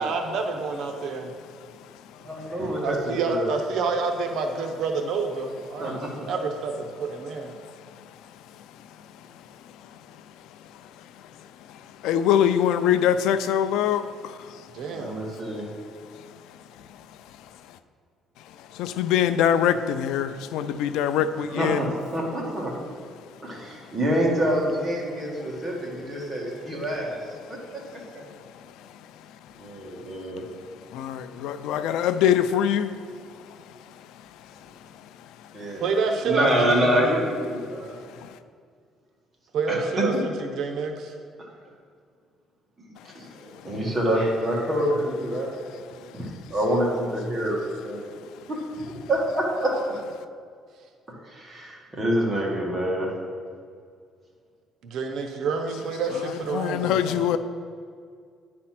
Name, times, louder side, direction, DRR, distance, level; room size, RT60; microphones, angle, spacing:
voice 1, 0.0-1.3 2.8-6.0 6.3-7.5 14.7-15.2 35.8-37.2 39.5-41.1 54.8-57.4, right 4 dB, 65° right, 4 dB, 0.8 m, -28 dB
voice 2, 2.2-3.0 3.3-3.5 5.8-6.3 14.9-15.6 21.5-21.9 22.1-22.7 23.4-27.2 27.5-27.6 29.6-30.4 35.5-35.8 36.2-37.9 39.7-40.2 42.8-45.6 45.9-47.6 47.8-48.0 48.5-48.6 49.1-49.7 51.2-53.1, right 1 dB, 20° right, -3 dB, 1.9 m, -26 dB
voice 3, 12.0-14.6 18.7-21.9 30.9-33.0 38.2-38.3 56.3-57.4, left 9 dB, 85° left, 12 dB, 0.4 m, -23 dB
9.8 x 4.3 x 5.9 m, 2.1 s
cardioid pair, 140°, 0 cm